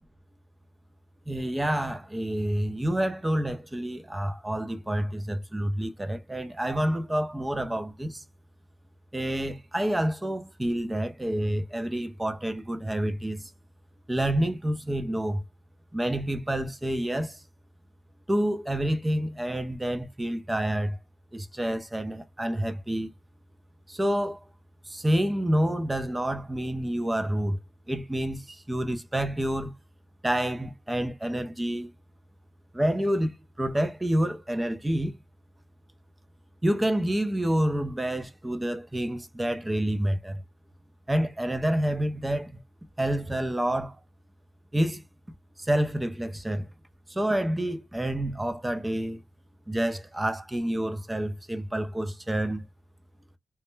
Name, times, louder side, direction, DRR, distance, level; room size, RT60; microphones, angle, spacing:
voice 1, 1.3-8.2 9.1-13.5 14.1-15.4 15.9-17.4 18.3-21.0 21.3-23.1 23.9-24.4 24.9-27.6 27.9-29.7 30.2-31.9 32.7-35.2 36.6-40.4 41.1-42.6 43.0-44.0 44.7-45.0 45.6-46.7 47.1-49.2 49.7-52.6, right 1 dB, 10° right, 0.4 m, -28 dB
2.2 x 2.1 x 3.0 m
cardioid pair, 120°, 0 cm